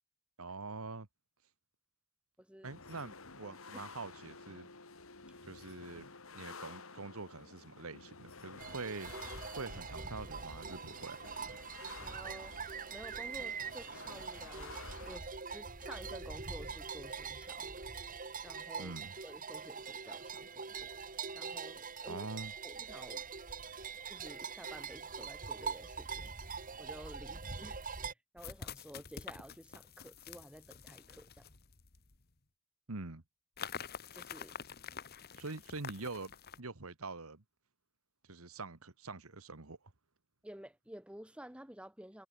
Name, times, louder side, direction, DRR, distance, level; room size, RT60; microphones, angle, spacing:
voice 1, 0.4-1.1 2.6-4.7 5.5-6.1 6.3-9.1 9.6-11.2 18.8-19.2 22.1-22.5 32.9-33.2 35.4-37.4 38.3-39.8, right 3 dB, 85° right, 1.8 m, -44 dB
voice 2, 2.4-2.7 3.4-3.9 12.0-12.5 12.9-17.7 18.4-19.0 19.2-20.9 21.3-22.3 22.6-23.3 24.1-26.3 26.8-27.8 28.3-31.5 34.1-34.6 40.4-42.3, equal, 5° right, 1.8 m, -52 dB
sound 1, 2.6-15.2, left 4 dB, 75° left, 3.1 m, -52 dB
sound 2, 8.6-28.1, right 5 dB, 40° right, 2.6 m, -43 dB
sound 3, 27.0-27.1 28.4-32.2 33.6-36.6, left 7 dB, 45° left, 1.4 m, -47 dB
head